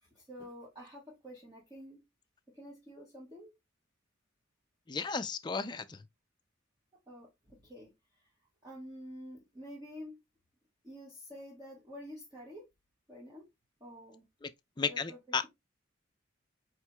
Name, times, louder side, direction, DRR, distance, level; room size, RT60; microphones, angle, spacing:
voice 1, 0.0-2.0 2.5-3.5 7.1-7.9 8.2-8.3 8.6-10.2 10.8-12.6 13.1-13.5 13.8-14.2 14.8-15.5, equal, 20° right, 1.4 m, -49 dB
voice 2, 4.9-6.0 14.4-14.5 14.8-15.5, left 5 dB, 20° left, 0.3 m, -34 dB
4.5 x 4.5 x 2.2 m
head